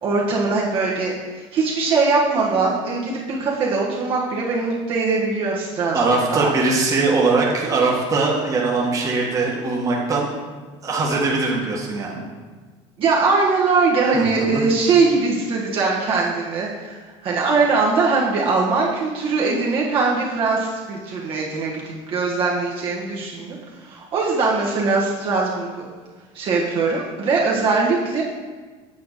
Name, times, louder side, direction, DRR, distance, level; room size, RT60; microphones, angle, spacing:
voice 1, 0.0-6.0 6.3-6.5 13.0-25.9 26.3-28.2, right 4 dB, 40° right, -4 dB, 1.4 m, -21 dB
voice 2, 5.9-10.3 10.8-12.2 14.1-14.6, right 3 dB, 25° right, -2 dB, 1.6 m, -21 dB
8.7 x 4.6 x 6.6 m, 1.4 s
cardioid pair, 150°, 13 cm